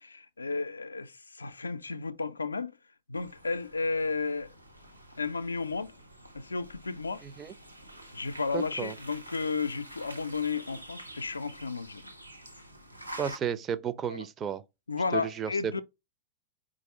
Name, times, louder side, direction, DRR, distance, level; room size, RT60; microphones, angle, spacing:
voice 1, 0.0-2.7 3.1-4.5 5.2-5.9 6.3-7.2 8.1-12.0 14.1-14.2 14.9-15.8, left 4 dB, 80° left, 0.3 m, -33 dB
sound 1, 3.1-13.4, right 1 dB, 90° right, 0.8 m, -48 dB
voice 2, 7.2-7.5 8.5-8.9 13.2-14.6 15.1-15.8, right 8 dB, 25° right, 0.4 m, -33 dB
4.5 x 2.5 x 4.0 m
figure-of-eight pair, 90°, 0 cm